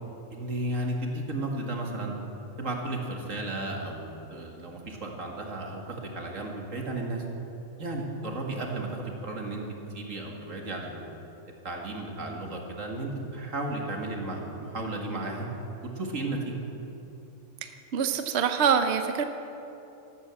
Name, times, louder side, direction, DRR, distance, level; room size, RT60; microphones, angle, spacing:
voice 1, 0.3-2.1 2.6-7.2 7.8-9.6 9.9-11.1 11.6-15.5 16.0-16.6, right 2 dB, 90° right, 0 dB, 2.4 m, -34 dB
voice 2, 17.9-19.2, right 7 dB, 60° right, 7 dB, 1.0 m, -24 dB
13.5 x 13.0 x 7.7 m, 3.0 s
omnidirectional pair, 1.3 m